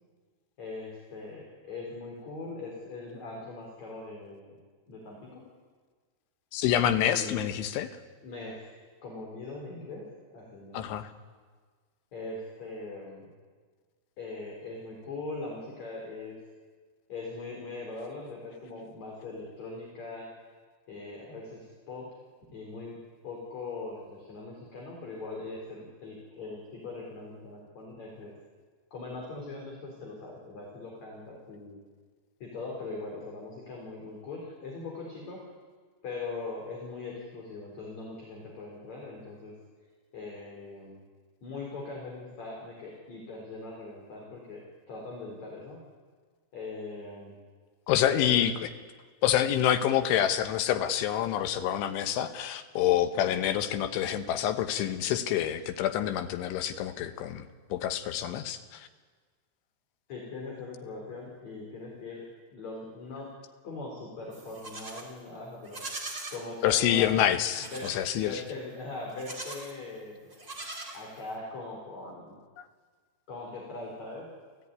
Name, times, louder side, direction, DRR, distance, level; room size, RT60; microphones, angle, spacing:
voice 1, 0.6-4.5 4.9-5.4 7.0-7.5 8.2-8.7 9.0-10.0 10.3-10.8 12.1-13.3 14.2-16.4 17.1-20.3 20.9-22.1 22.5-23.0 23.2-28.3 28.9-31.8 32.4-35.4 36.0-39.6 40.1-41.0 41.4-45.8 46.5-47.4 48.1-48.5 53.3-53.4 60.1-62.2 62.5-63.3 63.6-65.8 66.3-67.2 67.6-70.3 70.9-72.4 73.3-74.3, left 3 dB, 40° left, -1 dB, 5.1 m, -41 dB
voice 2, 6.5-7.9 10.7-11.1 47.9-48.5 49.2-57.4 57.7-58.9 66.6-68.4, left 11 dB, 85° left, 8 dB, 3.6 m, -27 dB
Livestock farm animals working animals, 64.3-65.1 65.6-66.4 67.5-68.0 69.1-69.7 70.3-71.4, right 2 dB, 20° right, 3.1 m, -41 dB
29.0 x 16.0 x 9.7 m, 1.5 s
omnidirectional pair, 5.3 m